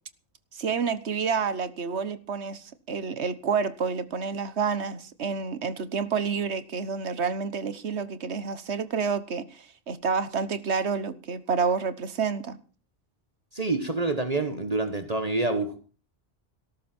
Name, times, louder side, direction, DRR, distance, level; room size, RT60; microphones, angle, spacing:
voice 1, 0.5-12.6, right 5 dB, 85° right, 1.5 m, -29 dB
voice 2, 13.5-15.8, right 2 dB, 35° right, 1.5 m, -27 dB
18.0 x 13.5 x 4.5 m
omnidirectional pair, 1.1 m